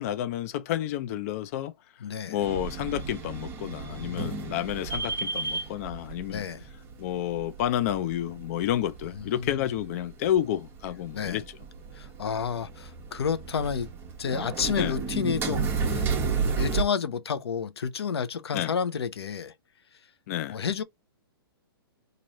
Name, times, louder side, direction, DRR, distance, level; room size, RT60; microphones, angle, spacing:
voice 1, 0.0-1.7 2.3-6.4 7.0-11.4 14.8-15.0 18.5-18.7 20.3-20.6, left 11 dB, 35° left, 0.5 m, -30 dB
voice 2, 2.0-2.4 3.9-4.5 6.3-6.6 9.1-9.6 11.1-11.4 11.9-13.9 14.2-16.1 16.6-19.5 20.5-20.8, left 6 dB, 85° left, 0.7 m, -30 dB
sound 1, 2.4-16.8, right 5 dB, 15° right, 0.9 m, -33 dB
3.1 x 2.5 x 4.1 m
hypercardioid pair, 155°, 13 cm